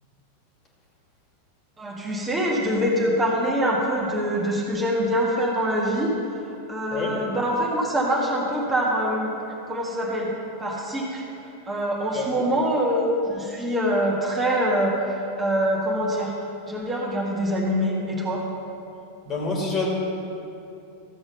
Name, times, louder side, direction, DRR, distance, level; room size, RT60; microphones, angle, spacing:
voice 1, 1.8-6.1 6.7-9.3 9.7-11.2 11.7-16.3 16.7-18.5, equal, 15° right, -4 dB, 1.8 m, -24 dB
voice 2, 12.1-12.5 19.3-19.9, left 3 dB, 25° left, -1 dB, 2.4 m, -27 dB
14.0 x 8.0 x 5.6 m, 2.7 s
figure-of-eight pair, 90°, 0 cm